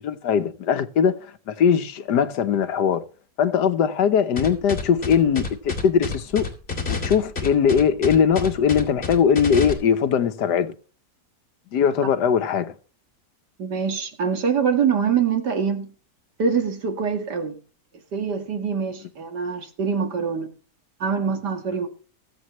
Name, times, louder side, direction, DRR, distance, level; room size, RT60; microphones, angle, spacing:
voice 1, 0.0-3.0 3.4-6.5 6.9-10.7 11.7-12.7, left 7 dB, 90° left, 1.6 m, -20 dB
sound 1, 4.4-9.7, left 4 dB, 40° left, 2.6 m, -28 dB
voice 2, 13.6-15.9 16.4-17.6 18.1-20.5 21.0-21.9, right 6 dB, 85° right, 2.3 m, -24 dB
22.0 x 7.7 x 3.1 m
omnidirectional pair, 1.7 m